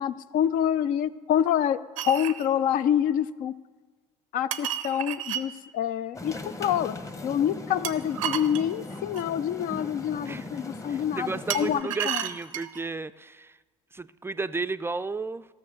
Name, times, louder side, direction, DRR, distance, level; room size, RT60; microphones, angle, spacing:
voice 1, 0.0-3.5 4.3-7.0 7.2-12.2, left 9 dB, 55° left, 15 dB, 0.5 m, -27 dB
sound 1, 2.0-2.5 4.5-5.5 7.8-9.3 11.5-12.8, right 11 dB, 85° right, 0.6 m, -32 dB
sound 2, 6.1-11.8, left 2 dB, 20° left, 1.0 m, -39 dB
voice 2, 10.9-13.6 13.9-15.5, right 3 dB, 15° right, 13 dB, 0.4 m, -33 dB
14.5 x 6.8 x 6.4 m, 1.4 s
hypercardioid pair, 65°, 17 cm